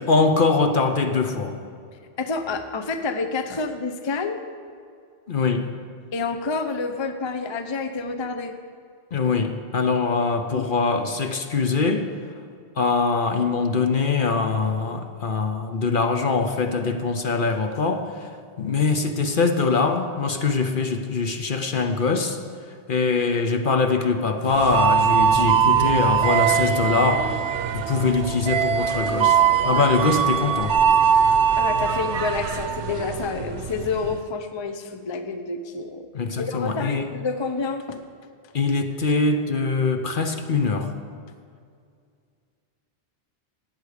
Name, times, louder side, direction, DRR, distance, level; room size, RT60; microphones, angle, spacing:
voice 1, 0.0-1.6 5.3-5.7 9.1-12.1 12.8-18.3 18.6-22.4 22.9-30.8 36.1-37.1 38.5-40.9, left 4 dB, 55° left, 6 dB, 0.9 m, -23 dB
voice 2, 2.2-4.4 6.1-8.5 10.5-10.7 31.6-36.1 36.4-38.0, left 4 dB, 30° left, 8 dB, 0.6 m, -28 dB
sound 1, 24.5-34.2, right 8 dB, 75° right, 1.0 m, -21 dB
15.0 x 9.2 x 5.0 m, 2.3 s
omnidirectional pair, 1.2 m